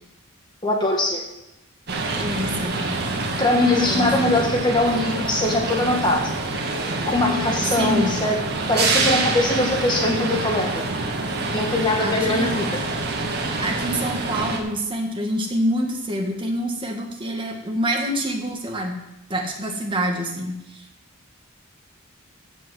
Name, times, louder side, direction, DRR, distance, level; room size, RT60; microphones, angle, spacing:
voice 1, 0.6-1.2 3.4-6.3 7.1-8.4 8.7-10.7 11.5-12.8, left 2 dB, 20° left, 1 dB, 1.5 m, -22 dB
sound 1, 1.9-14.6, right 3 dB, 50° right, 2.0 m, -26 dB
voice 2, 2.2-2.9 3.9-4.3 7.7-8.1 12.0-12.6 13.6-19.0 19.3-20.9, equal, 25° right, 1 dB, 1.9 m, -26 dB
15.0 x 5.4 x 7.9 m, 0.91 s
head